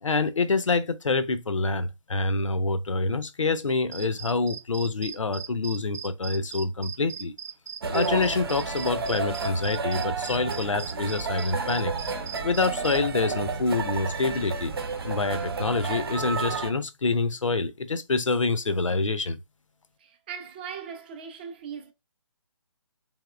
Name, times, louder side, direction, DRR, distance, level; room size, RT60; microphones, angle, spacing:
voice 1, 0.0-7.3 7.9-11.9 12.4-14.7 15.0-19.4, left 3 dB, 85° left, 0.5 m, -26 dB
sound 1, 3.9-13.0, right 6 dB, 85° right, 0.7 m, -38 dB
sound 2, 7.8-16.7, right 4 dB, 50° right, 0.7 m, -31 dB
voice 2, 20.0-21.9, right 7 dB, 20° right, 0.4 m, -39 dB
3.5 x 2.9 x 2.3 m
figure-of-eight pair, 145°, 16 cm